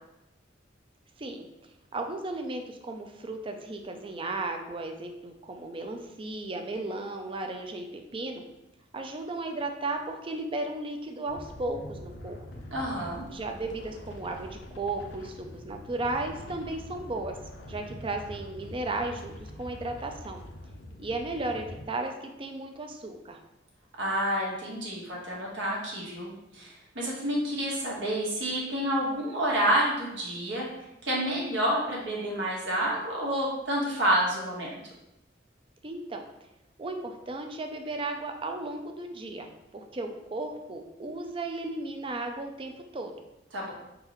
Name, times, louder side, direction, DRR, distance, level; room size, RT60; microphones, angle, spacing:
voice 1, 1.2-7.9 8.1-8.4 8.9-12.4 13.3-17.3 17.7-20.4 21.0-23.4 35.8-36.3 36.8-43.1, right 2 dB, 30° right, 4 dB, 0.5 m, -35 dB
sound 1, 11.3-21.9, left 1 dB, 70° left, 0.6 m, -44 dB
voice 2, 12.7-13.2 24.0-30.7 31.0-34.7 43.5-43.7, right 1 dB, 75° right, -4 dB, 1.4 m, -29 dB
4.4 x 3.8 x 3.0 m, 0.91 s
head